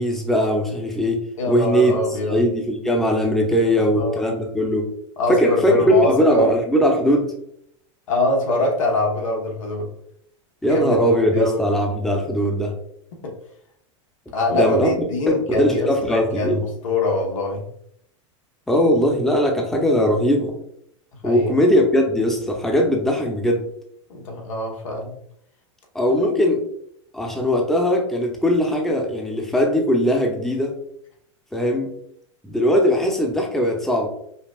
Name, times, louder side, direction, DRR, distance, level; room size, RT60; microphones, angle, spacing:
voice 1, 0.0-2.0 2.3-4.9 5.3-7.3 10.6-12.7 14.5-14.9 15.6-16.6 18.7-20.5 21.2-23.6 25.9-26.6 27.1-30.8 31.5-31.9 32.4-34.1, equal, ahead, 1 dB, 0.7 m, -20 dB
voice 2, 1.4-2.4 3.8-4.2 5.2-6.5 8.1-9.9 10.6-11.0 11.3-11.6 13.2-13.3 14.3-17.6 21.2-21.5 24.1-25.2, left 1 dB, 85° left, 0 dB, 1.2 m, -23 dB
5.5 x 2.3 x 2.4 m, 0.70 s
hypercardioid pair, 115°, 16 cm